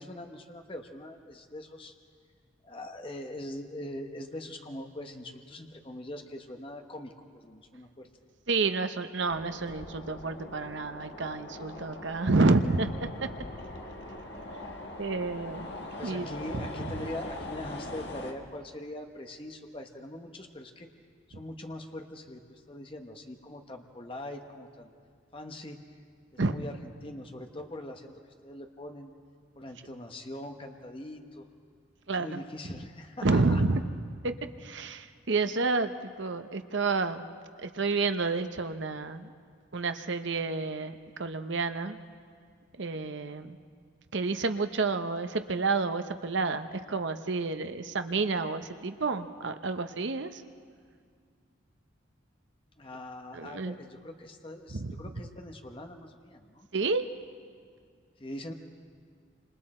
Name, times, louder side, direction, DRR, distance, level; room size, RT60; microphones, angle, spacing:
voice 1, 0.0-1.9 2.6-8.1 16.0-20.9 21.3-24.9 25.3-26.0 26.3-28.1 28.4-29.1 29.6-31.4 32.1-33.6 52.8-56.7 58.2-58.5, left 1 dB, 25° left, 4 dB, 1.2 m, -42 dB
voice 2, 8.5-13.3 15.0-15.7 16.0-16.3 26.4-26.6 32.1-32.4 33.2-33.8 34.2-34.3 34.6-37.3 37.6-39.3 39.7-42.0 42.8-43.6 44.1-50.4 53.3-53.7 54.7-54.9 56.7-57.0, right 3 dB, 65° right, 9 dB, 0.8 m, -29 dB
sound 1, 9.3-18.3, left 1 dB, 55° left, 1.7 m, -42 dB
28.0 x 26.5 x 4.4 m, 2.1 s
head